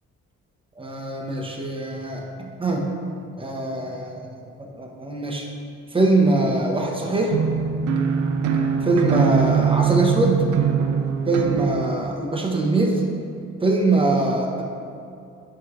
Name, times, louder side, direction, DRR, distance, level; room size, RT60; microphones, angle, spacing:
voice 1, 0.8-2.9 3.4-5.5 5.9-7.4 8.8-10.4 11.3-13.1 13.6-14.6, right 2 dB, 15° right, 0 dB, 1.1 m, -22 dB
sound 1, 7.3-11.9, right 7 dB, 85° right, 0.7 m, -22 dB
9.3 x 6.0 x 3.2 m, 2.5 s
cardioid pair, 90°, 30 cm